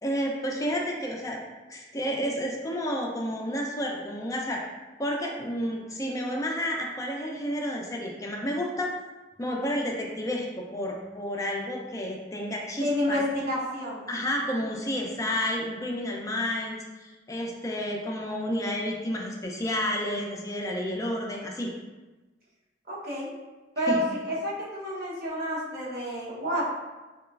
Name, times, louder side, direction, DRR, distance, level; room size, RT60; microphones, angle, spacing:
voice 1, 0.0-1.4 1.7-4.6 5.0-8.9 9.4-13.2 14.1-21.7 23.9-24.1, equal, 20° left, 0 dB, 0.3 m, -30 dB
voice 2, 12.8-14.0 22.9-23.3 23.8-26.6, equal, 55° right, -6 dB, 0.8 m, -29 dB
2.9 x 2.2 x 2.3 m, 1.2 s
head